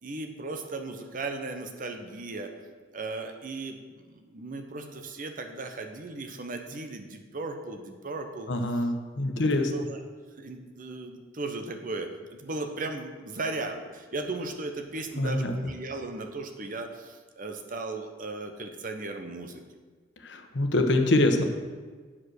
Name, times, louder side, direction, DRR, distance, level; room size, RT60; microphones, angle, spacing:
voice 1, 0.0-2.5 2.9-8.9 9.4-10.0 10.4-19.6, right 3 dB, 50° right, 6 dB, 0.9 m, -36 dB
voice 2, 8.5-9.7 15.2-15.5 20.2-21.4, left 2 dB, 80° left, 5 dB, 1.0 m, -25 dB
8.5 x 5.1 x 6.3 m, 1.5 s
head